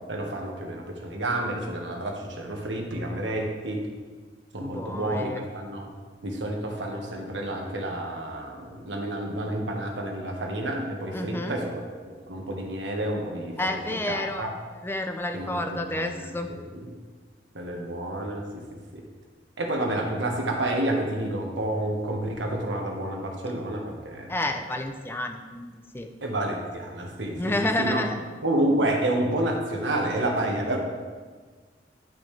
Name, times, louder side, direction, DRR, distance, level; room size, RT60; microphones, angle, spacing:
voice 1, 0.1-3.8 4.5-5.9 6.2-14.5 15.3-16.9 17.5-18.6 18.9-19.0 19.6-24.3 26.2-28.1 28.4-30.8, right 1 dB, 80° right, 0 dB, 1.4 m, -29 dB
voice 2, 4.6-5.4 11.1-11.6 13.6-14.4 14.8-16.5 24.3-26.1 27.4-28.2, left 1 dB, 10° left, 5 dB, 0.5 m, -30 dB
10.5 x 6.1 x 3.3 m, 1.5 s
head